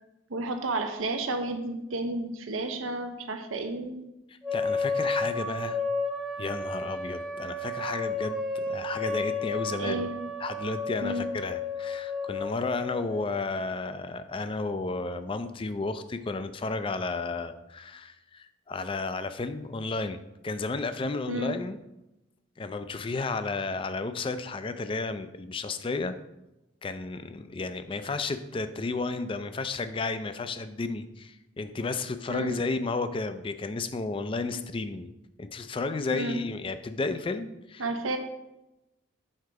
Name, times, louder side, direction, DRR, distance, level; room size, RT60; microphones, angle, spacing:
voice 1, 0.3-4.0 9.8-10.1 11.0-11.2 21.3-21.5 32.3-32.5 36.1-36.4 37.8-38.2, right 2 dB, 85° right, 7 dB, 0.8 m, -31 dB
voice 2, 4.3-5.8 6.4-10.0 10.4-21.8 22.6-26.2 26.8-35.1 35.4-37.9, left 3 dB, 25° left, 10 dB, 0.3 m, -32 dB
sound 1, 4.4-13.4, left 3 dB, ahead, 0.8 m, -32 dB
6.5 x 3.8 x 4.7 m, 0.94 s
head